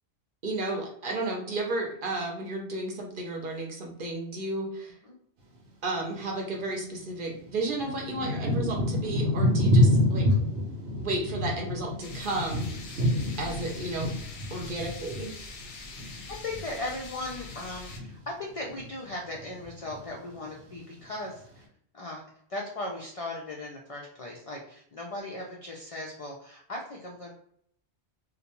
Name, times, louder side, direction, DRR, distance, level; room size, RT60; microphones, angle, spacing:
voice 1, 0.4-4.9 5.8-10.3 11.0-12.8 13.4-14.1 14.5-15.3, right 2 dB, 55° right, 0 dB, 0.7 m, -33 dB
Thunder / Rain, 6.7-6.8 7.5-17.0 17.3-18.1 18.7-19.1 19.3-20.1 20.7-20.8, left 1 dB, 85° right, 0.9 m, -27 dB
sound 1, 12.0-18.0, left 3 dB, 90° left, 0.9 m, -44 dB
voice 2, 16.4-21.7 21.9-22.2 22.5-27.3, left 2 dB, 60° left, -1 dB, 0.3 m, -38 dB
2.5 x 2.1 x 2.9 m, 0.66 s
omnidirectional pair, 1.1 m